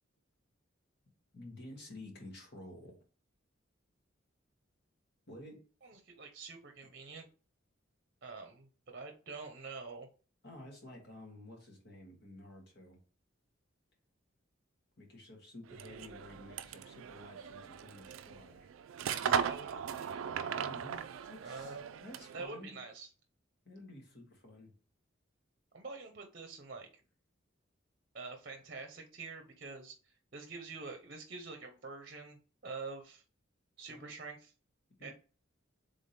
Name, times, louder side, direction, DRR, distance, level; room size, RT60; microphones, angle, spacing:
voice 1, 1.3-3.0 5.3-5.6 10.4-13.0 15.0-18.7 20.6-21.0 21.3-22.8 23.6-24.7 33.9-34.1 35.0-35.1, left 1 dB, 55° left, 0 dB, 1.6 m, -51 dB
voice 2, 5.8-7.3 8.2-10.1 19.1-20.2 21.4-21.8 22.3-23.1 25.7-26.9 28.1-30.0 30.3-32.4 32.6-33.2 33.8-34.5 35.0-35.1, right 4 dB, 45° right, 4 dB, 0.7 m, -46 dB
sound 1, 15.7-22.5, right 7 dB, 90° right, 0.3 m, -38 dB
3.7 x 3.5 x 4.1 m, 0.37 s
head